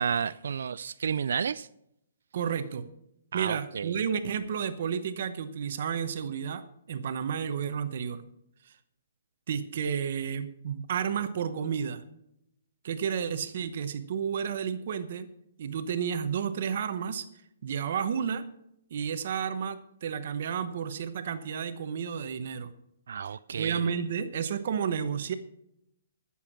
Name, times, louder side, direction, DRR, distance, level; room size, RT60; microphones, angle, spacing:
voice 1, 0.0-1.7 3.3-3.9 23.1-23.8, right 7 dB, 70° right, 16 dB, 0.3 m, -31 dB
voice 2, 2.3-2.9 3.3-6.6 6.9-8.2 8.7-8.8 9.5-12.0 12.8-15.3 15.6-17.2 17.6-18.4 18.9-22.7 23.6-25.4, right 7 dB, 50° right, 10 dB, 0.8 m, -31 dB
13.5 x 7.1 x 6.0 m, 0.80 s
hypercardioid pair, 165°, 0 cm